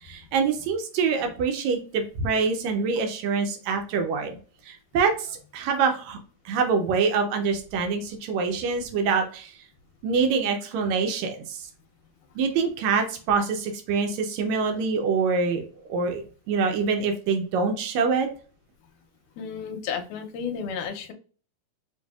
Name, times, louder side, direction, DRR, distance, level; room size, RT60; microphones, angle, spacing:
voice 1, 0.0-4.4 4.7-6.2 6.4-9.5 10.0-11.7 12.3-15.6 15.9-18.3, right 5 dB, 75° right, 4 dB, 1.7 m, -25 dB
voice 2, 19.4-21.1, left 7 dB, 75° left, 5 dB, 2.1 m, -32 dB
5.6 x 2.6 x 2.3 m, 0.40 s
omnidirectional pair, 3.9 m